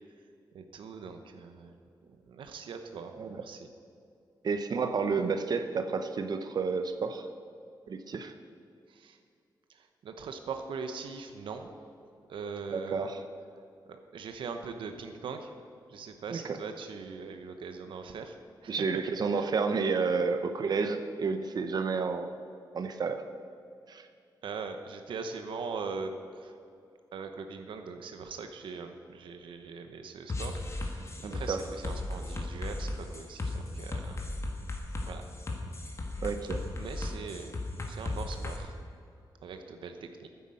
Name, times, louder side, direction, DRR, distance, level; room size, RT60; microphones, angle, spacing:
voice 1, 0.5-1.7 2.0-3.7 8.9-9.2 9.7-11.7 12.3-13.1 13.9-15.5 15.9-18.4 18.6-18.8 19.4-19.5 24.4-26.5 27.1-34.2 35.1-35.2 36.8-37.6 37.9-38.7 39.4-40.3, right 5 dB, 85° right, 6 dB, 0.9 m, -41 dB
voice 2, 4.4-7.3 7.9-8.3 12.7-13.2 16.3-16.6 18.7-22.3 22.7-23.2 23.9-24.1 31.2-31.7 36.2-36.6, right 5 dB, 55° right, 8 dB, 0.7 m, -30 dB
sound 1, 30.3-38.6, left 2 dB, 35° left, 1.6 m, -36 dB
9.6 x 9.4 x 7.7 m, 2.4 s
wide cardioid pair, 115°, 8 cm